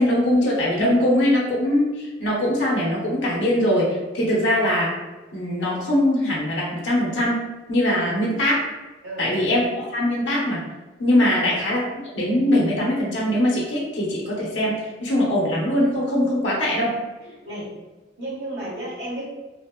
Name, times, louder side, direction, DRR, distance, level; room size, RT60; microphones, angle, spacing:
voice 1, 0.0-4.9 5.3-8.6 9.2-10.6 11.0-11.9 12.1-16.9, left 1 dB, 80° left, -4 dB, 0.7 m, -21 dB
voice 2, 17.3-17.7 18.2-19.3, right 1 dB, 75° right, -8 dB, 1.3 m, -33 dB
3.0 x 2.1 x 2.2 m, 1.1 s
head